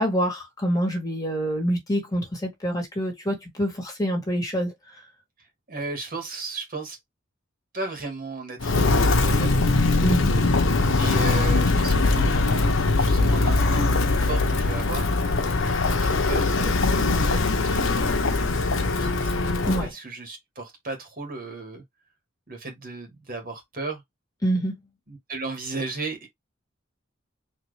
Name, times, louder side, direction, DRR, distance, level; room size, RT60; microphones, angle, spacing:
voice 1, 0.0-4.7 10.0-10.3 19.7-19.9 24.4-24.8, equal, 20° left, 1.9 m, -26 dB
voice 2, 5.7-7.0 7.7-10.0 11.0-15.1 15.8-19.3 19.8-21.8 22.5-24.0 25.1-26.3, right 3 dB, 45° right, 1.8 m, -35 dB
Walk footsteps, 8.6-19.9, left 3 dB, 80° left, 0.9 m, -21 dB
4.3 x 3.0 x 3.3 m
head